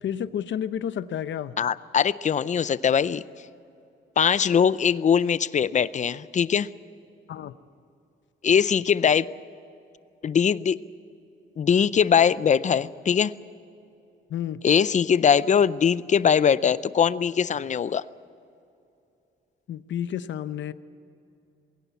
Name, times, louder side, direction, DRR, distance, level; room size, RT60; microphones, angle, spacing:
voice 1, 0.0-1.5 7.3-7.5 14.3-14.6 19.7-20.7, left 9 dB, 65° left, 13 dB, 0.8 m, -31 dB
voice 2, 1.6-3.2 4.2-6.7 8.4-9.3 10.2-10.8 11.6-13.3 14.6-18.0, left 7 dB, 35° left, 17 dB, 0.5 m, -21 dB
21.5 x 17.0 x 8.2 m, 2.7 s
wide cardioid pair, 160°, 21 cm